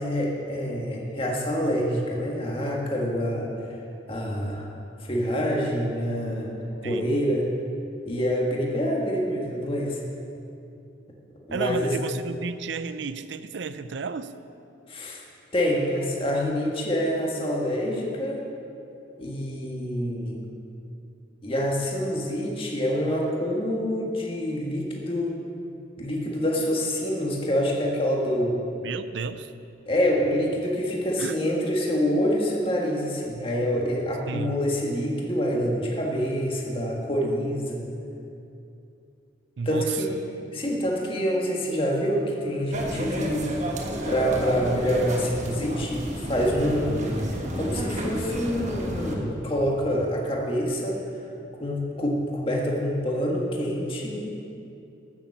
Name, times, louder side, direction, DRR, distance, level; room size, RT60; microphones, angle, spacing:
voice 1, 0.0-3.5 4.1-4.7 5.0-6.5 6.8-7.5 8.1-10.1 11.5-12.0 14.9-15.2 15.5-18.4 19.2-20.4 21.4-25.4 26.0-28.6 29.9-37.9 39.6-40.1 40.5-43.5 44.1-46.9 47.5-51.0 51.5-54.4, equal, 30° left, -2 dB, 1.7 m, -26 dB
voice 2, 11.5-14.3 28.8-29.5 31.2-31.3 34.3-34.6 39.6-40.0, right 5 dB, 60° right, 12 dB, 0.5 m, -32 dB
sound 1, 42.7-49.2, equal, 35° right, 1.3 m, -31 dB
13.0 x 7.0 x 7.2 m, 2.7 s
head